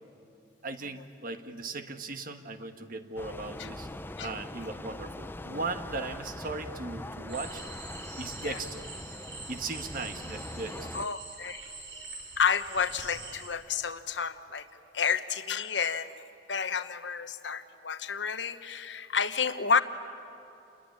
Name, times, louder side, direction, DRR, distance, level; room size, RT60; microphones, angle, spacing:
voice 1, 0.6-3.9 4.2-7.6 8.2-8.9 9.5-11.0, right 3 dB, 50° right, 7 dB, 1.5 m, -38 dB
sound 1, 3.2-11.1, left 1 dB, 10° left, 0.5 m, -42 dB
sound 2, 7.3-13.5, right 3 dB, 80° right, 5.1 m, -44 dB
voice 2, 10.9-11.6 12.4-14.7 14.9-19.8, left 6 dB, 80° left, 11 dB, 1.1 m, -30 dB
28.0 x 21.0 x 9.8 m, 2.9 s
head